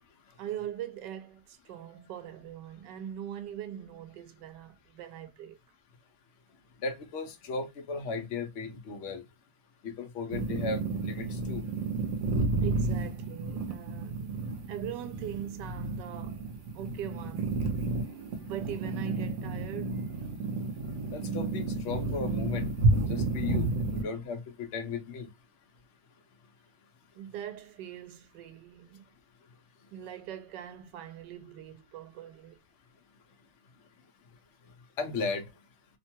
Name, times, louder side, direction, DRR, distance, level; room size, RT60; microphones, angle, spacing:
voice 1, 0.4-5.6 12.6-16.5 16.7-17.6 18.3-20.1 27.1-29.0 29.9-32.6, right 10 dB, 80° right, 1.2 m, -42 dB
voice 2, 6.8-9.2 9.8-11.6 21.1-22.6 23.1-23.7 24.0-25.3 35.0-35.5, left 4 dB, 85° left, 0.6 m, -36 dB
sound 1, 10.3-24.0, right 3 dB, 60° right, 0.9 m, -31 dB
2.9 x 2.2 x 2.7 m
omnidirectional pair, 1.9 m